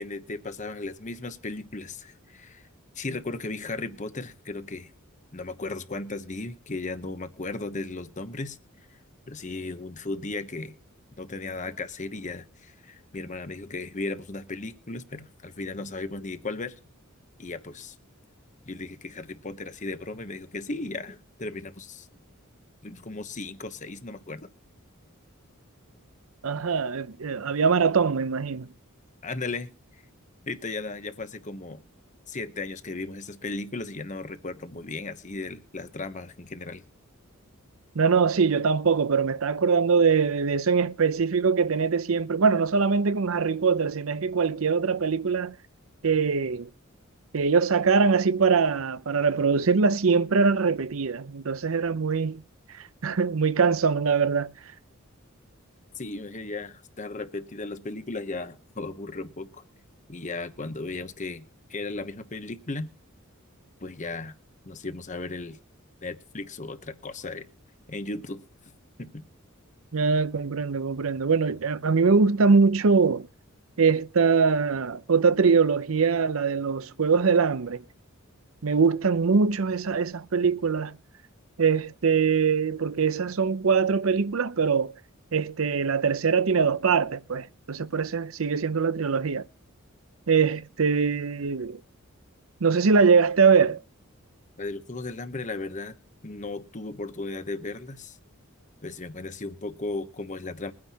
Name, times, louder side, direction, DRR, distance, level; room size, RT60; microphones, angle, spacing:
voice 1, 0.0-2.7 2.9-4.9 5.3-8.6 9.3-10.8 11.2-16.7 17.4-18.0 18.6-22.1 22.8-24.5 29.2-29.7 30.5-31.8 32.3-36.8 55.9-59.6 60.1-62.9 63.8-64.3 64.7-65.6 66.0-67.5 67.9-68.4 69.0-69.2 94.6-95.9 96.2-98.2 98.8-100.7, left 3 dB, 35° left, 1.0 m, -36 dB
voice 2, 26.4-28.7 38.0-45.6 46.0-46.7 47.3-52.4 53.0-54.5 69.9-73.3 73.8-77.8 78.6-81.0 81.6-84.9 85.3-89.4 90.3-91.8 92.6-93.8, right 5 dB, 75° right, 0.6 m, -23 dB
22.0 x 9.6 x 2.9 m
head